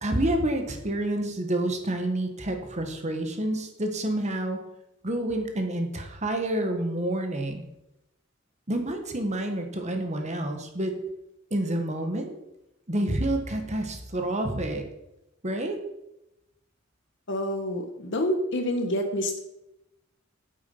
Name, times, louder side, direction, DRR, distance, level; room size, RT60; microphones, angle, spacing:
voice 1, 0.0-4.6 5.0-7.6 8.7-10.9 11.5-12.3 12.9-14.8 15.4-15.8, right 1 dB, 35° right, 4 dB, 1.6 m, -28 dB
voice 2, 17.3-19.4, left 1 dB, 65° left, 5 dB, 1.6 m, -27 dB
8.8 x 8.3 x 5.6 m, 0.88 s
head